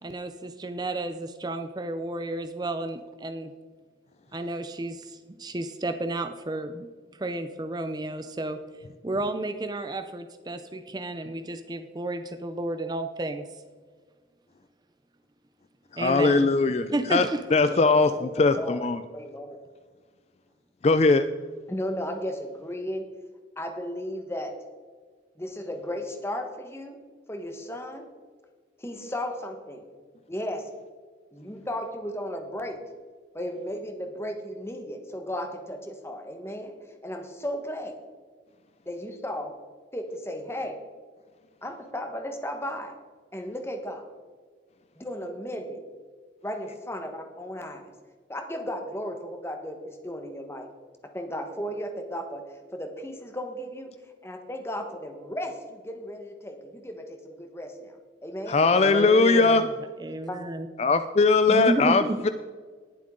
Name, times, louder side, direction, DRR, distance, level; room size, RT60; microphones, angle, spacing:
voice 1, 0.0-3.5 4.3-13.5 16.0-16.4 16.9-17.5 58.7-59.6 60.0-60.7 61.5-62.2, right 2 dB, 20° right, 8 dB, 0.5 m, -32 dB
voice 2, 15.9-19.0 20.8-21.2 58.5-59.7 60.8-62.3, left 3 dB, 35° left, 11 dB, 0.3 m, -20 dB
voice 3, 17.7-19.6 21.7-23.0 23.6-24.5 25.4-27.0 27.3-28.1 28.8-29.8 30.3-30.7 31.3-32.8 33.3-36.7 37.0-37.9 38.9-39.5 39.9-40.8 41.6-42.9 43.3-44.0 45.0-45.8 46.4-47.9 48.3-50.7 51.1-52.4 52.7-53.9 54.2-57.9 58.2-58.6 59.0-59.5 60.3-60.4, equal, 15° left, 5 dB, 1.2 m, -35 dB
19.5 x 7.5 x 3.8 m, 1.5 s
head